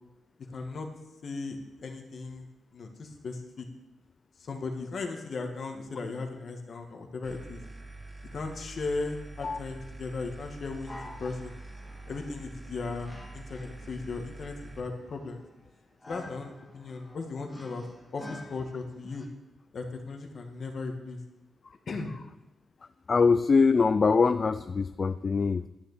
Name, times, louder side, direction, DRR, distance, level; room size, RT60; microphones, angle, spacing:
voice 1, 0.5-0.9 1.2-2.4 2.7-3.7 4.4-7.6 8.3-11.5 12.1-15.4 16.1-17.8 18.1-19.3 19.7-21.2 21.9-22.1, left 3 dB, 55° left, 3 dB, 1.9 m, -37 dB
sound 1, 7.2-14.8, right 2 dB, 25° right, 1.5 m, -45 dB
sound 2, 10.9-19.3, left 1 dB, 15° left, 2.5 m, -50 dB
voice 2, 23.1-25.7, left 4 dB, 40° left, 12 dB, 0.4 m, -23 dB
11.5 x 7.0 x 8.4 m, 1.0 s
cardioid pair, 120°, 0 cm